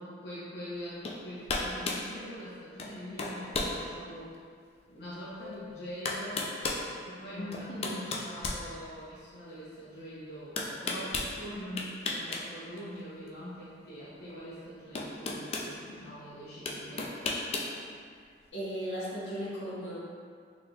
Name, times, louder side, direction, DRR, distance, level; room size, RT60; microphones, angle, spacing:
voice 1, 0.0-4.3 4.9-6.5 7.0-17.1, equal, 65° left, -10 dB, 0.8 m, -43 dB
sound 1, 1.0-1.2 1.5-2.1 2.8-2.9 3.2-3.8 4.3-4.4 5.5-5.6 6.1-6.9 7.5-9.2 10.6-11.3 11.8-12.4 12.7-12.9 14.3-14.4 15.0-15.7 16.7-17.7, left 3 dB, 35° left, 0.3 m, -33 dB
Keyboard (musical), 5.4-8.1, left 13 dB, 15° right, 0.5 m, -51 dB
voice 2, 7.4-8.1 16.9-17.1 18.5-20.0, equal, 85° left, -8 dB, 1.0 m, -37 dB
3.8 x 3.5 x 2.3 m, 2.1 s
head